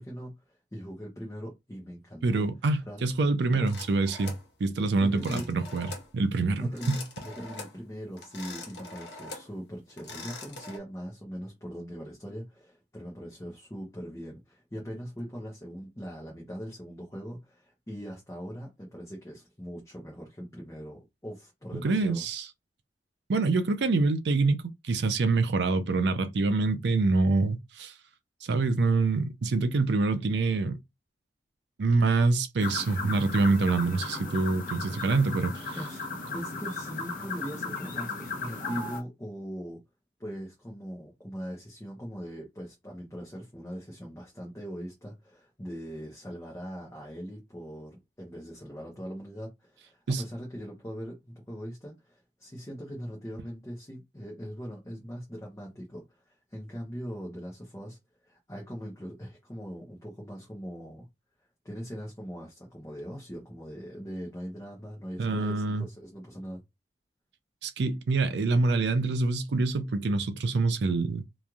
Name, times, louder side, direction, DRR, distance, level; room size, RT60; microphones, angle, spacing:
voice 1, 0.0-2.5 2.9-3.0 3.5-3.7 5.0-5.4 6.6-22.3 35.8-36.0 36.3-39.8 40.2-58.0 58.2-61.1 61.6-66.6, equal, 15° left, 0.8 m, -41 dB
voice 2, 2.2-5.9 6.1-7.0 21.7-22.5 23.3-27.9 28.4-30.8 31.8-35.8 50.1-50.2 65.2-65.9 67.6-71.2, right 3 dB, 80° right, 0.5 m, -26 dB
sound 1, 3.7-4.5 5.2-6.1 6.6-7.8 8.2-9.5 9.9-10.8, left 3 dB, 80° left, 0.9 m, -43 dB
sound 2, 32.6-39.0, left 3 dB, 50° left, 0.9 m, -36 dB
3.0 x 2.5 x 2.3 m
head